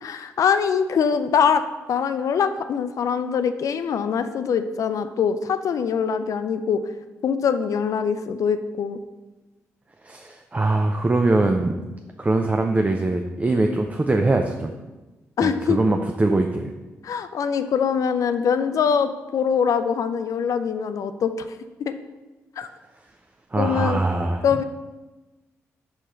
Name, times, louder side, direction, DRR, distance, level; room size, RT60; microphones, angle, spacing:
voice 1, 0.0-6.8 7.2-9.0 15.4-15.8 17.0-22.0 22.6-22.7 23.6-24.0 24.4-24.6, left 7 dB, 65° left, 10 dB, 0.4 m, -23 dB
voice 2, 10.0-11.7 12.2-14.7 15.4-16.7 23.5-24.6, right 2 dB, 25° right, 4 dB, 0.5 m, -22 dB
4.6 x 4.3 x 5.1 m, 1.1 s
supercardioid pair, 50°, 6 cm